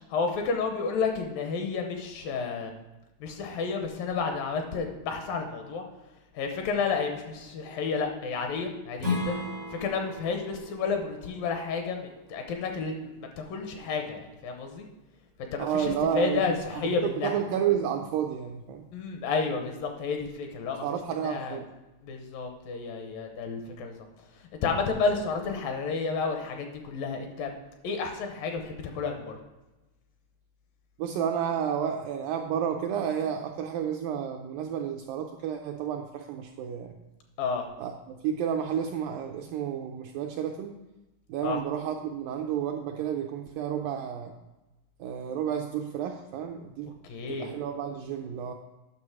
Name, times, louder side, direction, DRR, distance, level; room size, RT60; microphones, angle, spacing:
voice 1, 0.0-2.7 3.2-5.8 6.3-9.4 9.7-14.9 15.5-17.4 18.9-20.9 21.2-21.6 22.0-23.9 24.6-27.5 27.8-29.4 37.4-37.7 41.4-41.6 47.0-47.5, left 4 dB, 75° left, 4 dB, 2.4 m, -31 dB
Strum, 9.0-14.2, left 2 dB, 60° right, 0.4 m, -37 dB
voice 2, 15.6-16.4 16.7-18.9 20.8-21.7 31.0-37.0 37.8-40.7 41.3-44.3 45.0-46.9 47.3-48.5, right 8 dB, 85° right, 3 dB, 2.0 m, -31 dB
10.0 x 6.2 x 4.7 m, 1.0 s
omnidirectional pair, 4.5 m